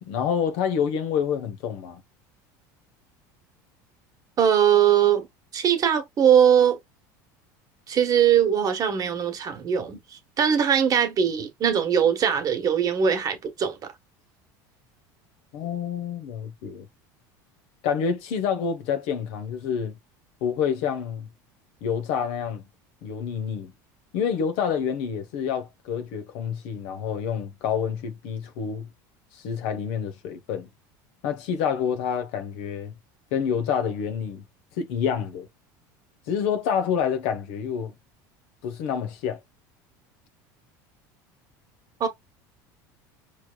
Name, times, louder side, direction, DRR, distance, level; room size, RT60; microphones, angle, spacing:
voice 1, 0.0-2.0 15.5-16.9 17.8-20.0 20.4-21.3 21.8-22.6 23.0-23.7 24.1-28.9 29.3-30.7 31.2-32.9 33.3-34.4 34.8-35.5 36.3-37.9 38.6-39.4, left 7 dB, 70° left, 0.8 m, -28 dB
voice 2, 4.4-5.3 5.5-6.8 7.9-10.0 10.4-13.8 42.0-42.1, right 8 dB, 40° right, 1.2 m, -21 dB
4.6 x 3.2 x 2.3 m
supercardioid pair, 110°, 10 cm